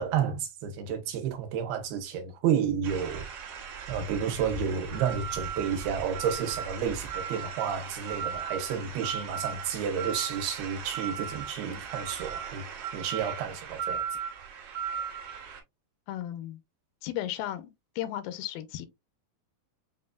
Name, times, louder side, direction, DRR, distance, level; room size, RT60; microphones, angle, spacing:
voice 1, 0.0-3.2 3.9-12.6 12.9-14.0, right 7 dB, 85° right, 2.9 m, -31 dB
sound 1, 2.8-15.6, right 7 dB, 65° right, 1.6 m, -37 dB
voice 2, 16.1-16.6 17.0-18.9, left 13 dB, 85° left, 2.5 m, -35 dB
7.6 x 2.6 x 2.2 m
omnidirectional pair, 4.2 m